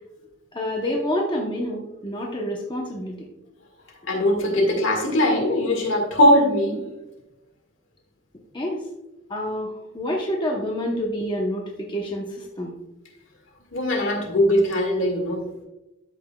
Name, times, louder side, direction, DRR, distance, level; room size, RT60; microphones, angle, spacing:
voice 1, 0.5-3.3 8.5-8.8 9.3-12.7, equal, 20° left, -1 dB, 0.8 m, -28 dB
voice 2, 4.1-6.9 13.7-15.4, left 1 dB, 60° left, 2 dB, 1.8 m, -20 dB
13.0 x 5.9 x 2.3 m, 0.98 s
head